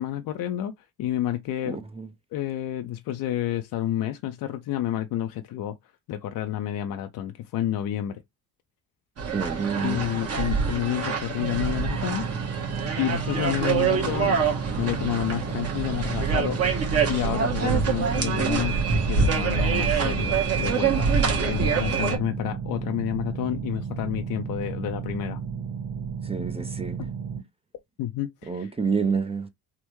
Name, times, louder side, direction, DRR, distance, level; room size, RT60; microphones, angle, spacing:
voice 1, 0.0-1.8 2.3-5.8 6.1-8.2 9.8-12.3 13.0-14.4 14.8-16.6 17.1-21.1 21.5-25.4 27.0-27.1 28.0-28.7, left 12 dB, 60° left, 0.5 m, -30 dB
voice 2, 1.7-2.1 9.3-10.0 26.2-27.0 28.5-29.5, right 5 dB, 15° right, 0.4 m, -28 dB
sound 1, 9.2-22.2, right 5 dB, 40° right, 1.1 m, -25 dB
sound 2, 11.4-27.4, right 6 dB, 75° right, 1.7 m, -33 dB
3.4 x 2.1 x 3.0 m
cardioid pair, 95°, 38 cm